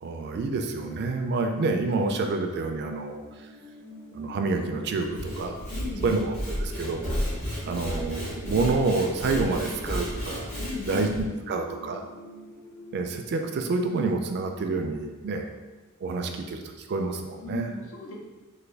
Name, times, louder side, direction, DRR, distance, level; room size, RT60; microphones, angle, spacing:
voice 1, 0.0-3.2 4.1-5.6 6.0-7.0 7.6-10.5 10.8-12.0 12.9-15.5 16.0-17.7, right 3 dB, 50° right, 5 dB, 0.3 m, -28 dB
sound 1, 3.2-15.1, left 1 dB, 10° left, 0.6 m, -48 dB
Sawing / Wood, 5.0-11.2, equal, 35° left, 1.3 m, -33 dB
voice 2, 5.7-6.2 10.6-11.1 17.4-18.2, left 3 dB, 65° left, -1 dB, 0.6 m, -37 dB
3.3 x 2.2 x 3.3 m, 1.2 s
head